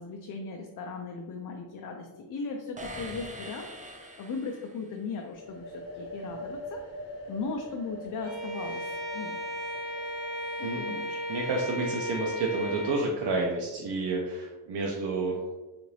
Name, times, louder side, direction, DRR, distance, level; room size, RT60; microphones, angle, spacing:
voice 1, 0.0-6.8 7.3-8.9 9.1-9.4 10.6-11.2, left 4 dB, 50° left, 3 dB, 0.5 m, -37 dB
sound 1, 2.8-5.0, right 1 dB, 20° right, 0.5 m, -43 dB
sound 2, 5.3-13.0, equal, 90° left, 0.8 m, -44 dB
Bowed string instrument, 8.2-13.1, equal, 40° right, 1.2 m, -35 dB
voice 2, 11.3-15.4, right 3 dB, 75° right, -1 dB, 0.6 m, -30 dB
3.8 x 2.5 x 3.1 m, 1.1 s
cardioid pair, 95°, 41 cm